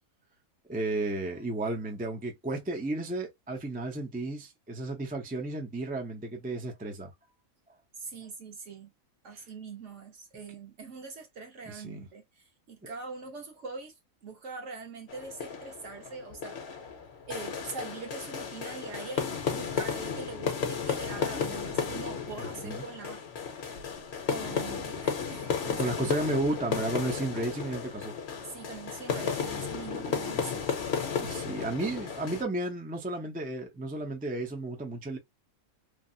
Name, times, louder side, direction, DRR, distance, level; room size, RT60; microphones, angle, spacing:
voice 1, 0.7-7.1 9.3-9.4 11.7-12.1 22.6-22.8 23.7-23.8 25.8-28.1 31.2-35.2, right 2 dB, 10° right, 0.4 m, -33 dB
voice 2, 8.0-8.9 9.2-13.9 14.2-16.6 17.2-23.5 24.3-25.9 27.1-27.2 28.4-30.7, right 4 dB, 65° right, 1.3 m, -43 dB
sound 1, 15.1-32.4, left 6 dB, 55° left, 1.0 m, -34 dB
3.3 x 2.1 x 2.6 m
omnidirectional pair, 1.4 m